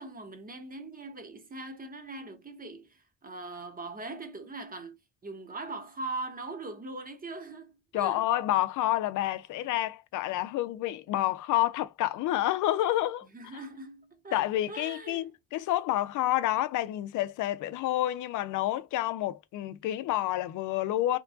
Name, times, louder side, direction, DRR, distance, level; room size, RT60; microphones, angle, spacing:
voice 1, 0.0-8.3 13.3-14.4 14.7-15.3, right 3 dB, 30° right, 0.9 m, -41 dB
voice 2, 7.9-13.6 14.3-21.2, left 14 dB, 80° left, 0.5 m, -29 dB
2.9 x 2.2 x 2.5 m
cardioid pair, 90°, 30 cm